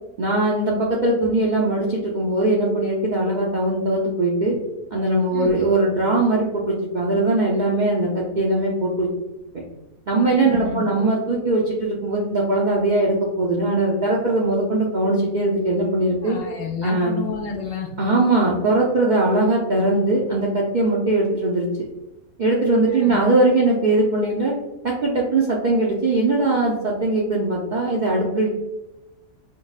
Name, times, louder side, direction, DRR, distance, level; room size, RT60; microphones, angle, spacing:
voice 1, 0.2-4.6 4.9-9.1 10.1-16.4 16.8-17.2 18.0-21.7 22.4-24.6 24.8-28.5, right 2 dB, 60° right, -4 dB, 0.5 m, -20 dB
voice 2, 10.3-10.9 16.2-17.9 22.9-23.2, left 5 dB, 70° left, 0 dB, 1.0 m, -30 dB
5.6 x 2.0 x 2.3 m, 0.98 s
omnidirectional pair, 1.5 m